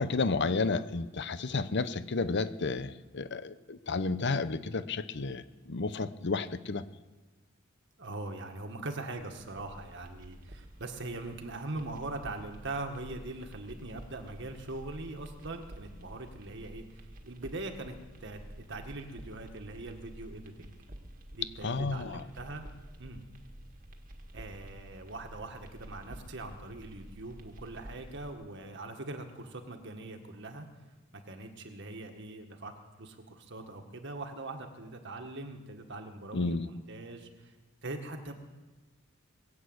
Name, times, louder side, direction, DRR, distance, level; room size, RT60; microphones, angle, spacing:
voice 1, 0.0-6.8 21.6-22.2 36.3-36.7, left 3 dB, 55° left, 14 dB, 0.7 m, -32 dB
voice 2, 8.0-16.8 17.2-18.4 18.7-20.7 21.3-22.6 23.0-23.2 24.3-30.7 31.3-37.5 37.8-38.3, right 2 dB, 60° right, 5 dB, 1.7 m, -41 dB
sound 1, 9.1-28.3, right 1 dB, 40° right, 1.6 m, -50 dB
21.0 x 8.5 x 8.0 m, 1.3 s
head